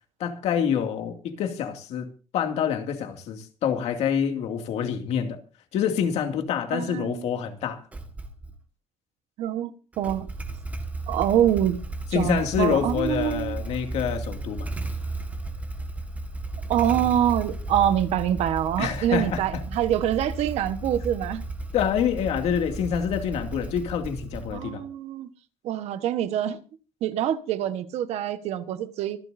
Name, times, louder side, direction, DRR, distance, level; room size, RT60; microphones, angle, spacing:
voice 1, 0.2-5.4 5.7-7.8 12.1-14.7 18.8-19.6 21.7-24.8, left 8 dB, 75° left, 2.4 m, -27 dB
voice 2, 6.7-7.3 9.4-10.3 11.1-11.8 12.1-13.6 16.7-21.4 24.5-25.3 25.6-26.6 27.0-29.2, right 11 dB, 75° right, 1.3 m, -25 dB
Motorcycle / Engine starting, 7.9-8.6 9.9-24.8, right 2 dB, 15° right, 1.6 m, -34 dB
25.5 x 11.0 x 2.7 m
cardioid pair, 160°, 11 cm